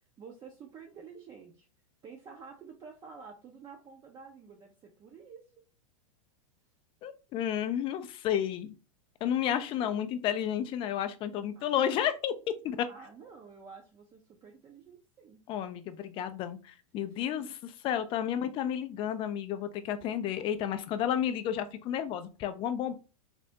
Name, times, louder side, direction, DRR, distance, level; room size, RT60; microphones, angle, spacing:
voice 1, 0.2-1.7 2.0-5.4 9.8-10.0 11.6-11.8 12.9-15.4 17.0-17.4, right 5 dB, 25° right, 0 dB, 0.5 m, -50 dB
voice 2, 7.0-8.7 9.2-12.9 15.5-17.5 17.8-23.0, left 10 dB, 30° left, 10 dB, 0.3 m, -31 dB
3.3 x 2.0 x 2.7 m, 0.33 s
hypercardioid pair, 105°, 18 cm